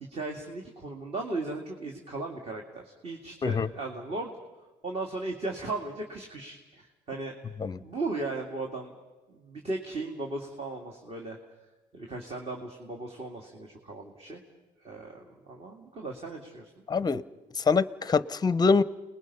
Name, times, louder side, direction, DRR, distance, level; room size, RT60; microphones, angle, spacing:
voice 1, 0.1-4.3 4.8-8.9 9.3-11.4 11.9-14.4 14.8-16.7, right 2 dB, 35° right, 1 dB, 2.3 m, -37 dB
voice 2, 16.9-17.2 17.5-18.8, left 4 dB, 25° left, 17 dB, 0.7 m, -24 dB
29.5 x 20.5 x 5.5 m, 1.2 s
cardioid pair, 110°, 17 cm